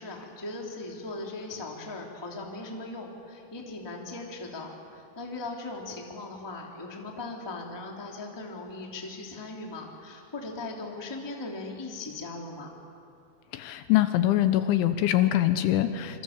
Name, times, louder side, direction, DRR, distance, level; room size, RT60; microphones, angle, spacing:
voice 1, 0.0-12.7, left 2 dB, 10° left, 0 dB, 1.4 m, -39 dB
voice 2, 13.5-16.2, left 13 dB, 80° left, 10 dB, 3.1 m, -24 dB
27.0 x 25.0 x 7.2 m, 2.5 s
omnidirectional pair, 5.7 m